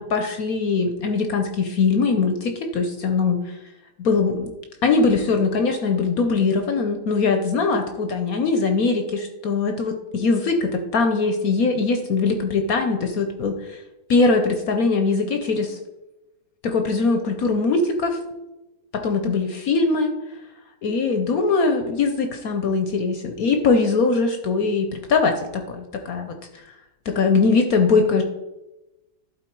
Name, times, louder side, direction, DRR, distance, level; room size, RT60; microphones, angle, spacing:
voice 1, 0.0-3.5 4.0-4.5 4.8-13.8 14.1-15.8 16.6-18.2 18.9-20.1 20.8-26.4 27.1-28.2, left 4 dB, 60° left, 6 dB, 1.0 m, -21 dB
11.5 x 4.3 x 4.5 m, 1.0 s
omnidirectional pair, 2.1 m